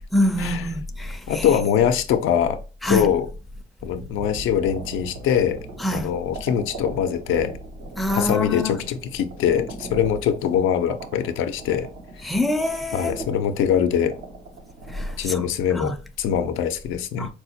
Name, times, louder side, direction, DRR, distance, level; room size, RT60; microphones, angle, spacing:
voice 1, 0.1-1.6 2.8-3.1 5.8-6.1 8.0-8.8 12.2-13.3 14.9-15.4 15.7-16.0 17.2-17.3, left 1 dB, ahead, 0.4 m, -25 dB
voice 2, 1.3-2.6 2.9-3.3 3.8-5.6 5.9-7.5 8.1-11.9 12.2-12.3 12.9-14.1 15.2-17.3, left 8 dB, 85° left, 0.5 m, -23 dB
sound 1, 3.8-8.4, right 4 dB, 65° right, 0.6 m, -43 dB
sound 2, 4.3-15.2, right 2 dB, 85° right, 1.0 m, -40 dB
4.5 x 2.1 x 2.7 m
cardioid pair, 90°, 20 cm